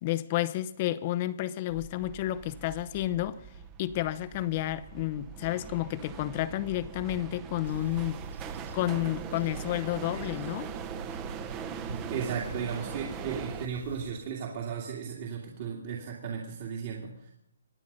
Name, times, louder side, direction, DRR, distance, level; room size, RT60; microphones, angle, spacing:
voice 1, 0.0-3.4 3.8-8.2 8.7-10.7, left 14 dB, 30° left, 0.7 m, -31 dB
sound 1, 1.7-13.7, right 8 dB, 20° right, 0.8 m, -42 dB
sound 2, 7.6-14.1, right 3 dB, 80° right, 4.9 m, -42 dB
voice 2, 12.1-17.3, right 6 dB, 40° right, 2.2 m, -35 dB
25.5 x 9.4 x 5.4 m
hypercardioid pair, 160°, 0 cm